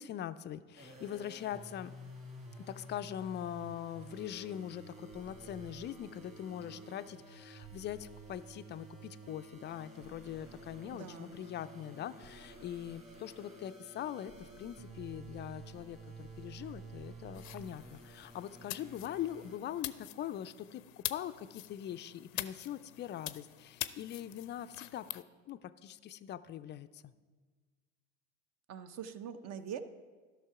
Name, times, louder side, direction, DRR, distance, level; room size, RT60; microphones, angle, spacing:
voice 1, 0.0-1.9 2.6-20.8 21.1-27.1, left 11 dB, 30° left, 13 dB, 0.3 m, -42 dB
sound 1, 0.8-19.6, right 2 dB, 20° right, 1.9 m, -51 dB
sound 2, 10.0-11.4 12.2-13.8 14.3-19.5, right 4 dB, 70° right, 1.2 m, -61 dB
voice 2, 10.9-11.4 28.7-29.8, right 8 dB, 40° right, 11 dB, 0.8 m, -43 dB
sound 3, 17.3-25.2, left 15 dB, 85° left, 0.5 m, -45 dB
12.5 x 5.9 x 4.8 m, 1.5 s
hypercardioid pair, 85°, 38 cm